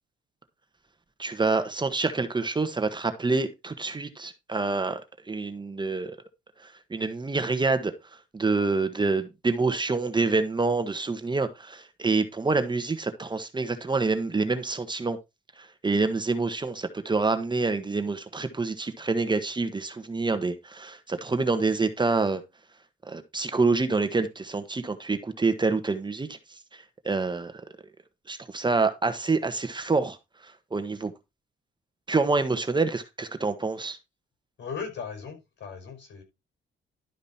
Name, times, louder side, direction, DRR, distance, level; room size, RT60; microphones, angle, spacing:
voice 1, 1.2-5.0 5.3-6.1 6.6-7.9 8.3-15.2 15.6-22.4 23.1-27.5 28.3-30.2 30.4-31.1 32.1-34.0, right 3 dB, 20° right, 1.3 m, -27 dB
voice 2, 34.6-36.2, left 6 dB, 65° left, 5.0 m, -37 dB
12.0 x 5.2 x 4.3 m
cardioid pair, 90°, 20 cm